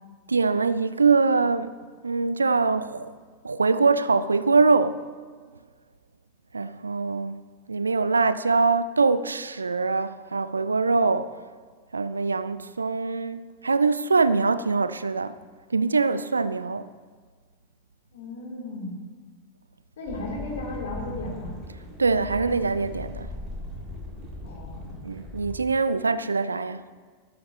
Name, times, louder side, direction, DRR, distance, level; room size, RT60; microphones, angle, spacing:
voice 1, 0.3-1.8 2.0-3.2 3.4-5.0 6.5-11.4 11.9-15.4 15.7-16.9 22.0-23.3 25.0-26.9, right 4 dB, 75° right, 0.4 m, -23 dB
voice 2, 18.1-19.0 20.0-21.5 24.4-24.8, left 2 dB, 60° left, 3.3 m, -35 dB
sound 1, 20.0-25.6, left 2 dB, 30° right, 3.9 m, -38 dB
13.0 x 12.5 x 3.0 m
figure-of-eight pair, 90°, 0 cm